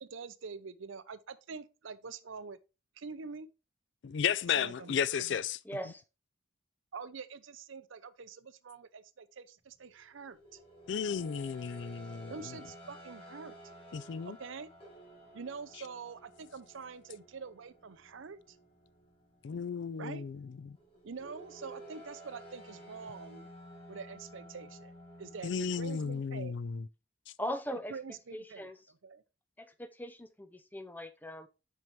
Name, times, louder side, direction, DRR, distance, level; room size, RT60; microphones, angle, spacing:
voice 1, 0.0-2.6 3.0-3.5 4.5-5.4 6.9-10.6 12.3-13.6 14.2-14.7 15.3-18.6 20.0-20.3 21.0-23.5 23.9-24.9 25.2-26.7 27.9-28.7 29.0-29.2, right 5 dB, 70° right, 0.6 m, -45 dB
voice 2, 4.0-5.6 10.9-12.3 13.9-14.4 19.4-20.4 20.6-20.8 25.4-26.8, left 7 dB, 60° left, 0.3 m, -33 dB
voice 3, 5.6-6.0 27.4-27.9 28.3-28.8 29.6-31.5, left 1 dB, 10° left, 0.5 m, -40 dB
sound 1, 9.7-26.2, equal, 25° left, 1.8 m, -53 dB
7.7 x 5.4 x 3.1 m
head